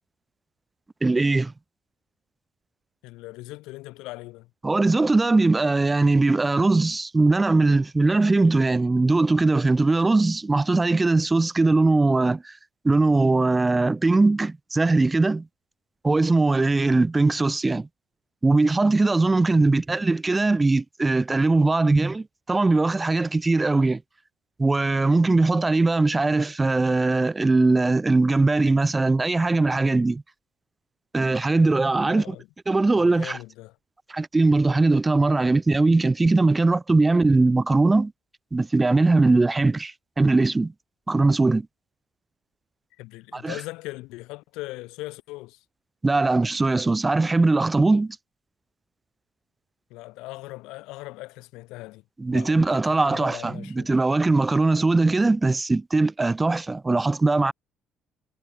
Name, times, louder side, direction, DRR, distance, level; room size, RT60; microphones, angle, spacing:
voice 1, 1.0-1.5 4.6-12.5 12.8-15.5 16.0-17.9 18.4-24.0 24.6-30.2 31.1-32.4 32.7-33.4 34.1-38.1 38.5-40.7 41.1-41.7 43.3-43.6 46.0-48.2 52.2-57.5, right 3 dB, 20° right, 1.7 m, -20 dB
voice 2, 3.0-4.5 32.0-32.5 32.9-33.8 43.0-45.6 49.9-52.0 52.3-53.9, left 21 dB, 85° left, 2.1 m, -39 dB
cardioid pair, 90°, 0 cm